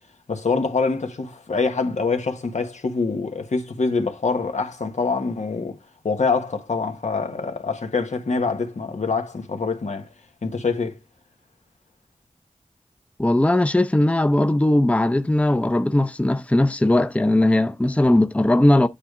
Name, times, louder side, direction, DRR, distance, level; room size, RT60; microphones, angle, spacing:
voice 1, 0.3-5.8 6.0-10.1 10.4-10.9, left 4 dB, 85° left, 1.3 m, -25 dB
voice 2, 13.2-18.9, left 1 dB, 10° left, 0.6 m, -19 dB
8.8 x 3.4 x 4.8 m
wide cardioid pair, 45°, 12 cm